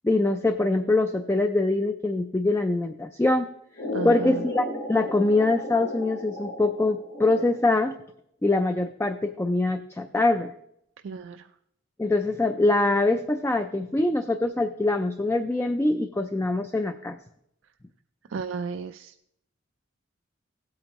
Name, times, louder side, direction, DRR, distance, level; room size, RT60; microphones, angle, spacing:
voice 1, 0.0-3.5 4.0-8.0 8.4-10.5 12.0-17.2, left 2 dB, 10° left, 7 dB, 0.3 m, -24 dB
sound 1, 3.8-7.8, left 1 dB, 65° left, 2.4 m, -34 dB
voice 2, 3.9-4.5 11.0-11.5 18.3-19.1, right 5 dB, 70° right, 8 dB, 0.4 m, -34 dB
16.5 x 8.6 x 3.0 m, 0.75 s
head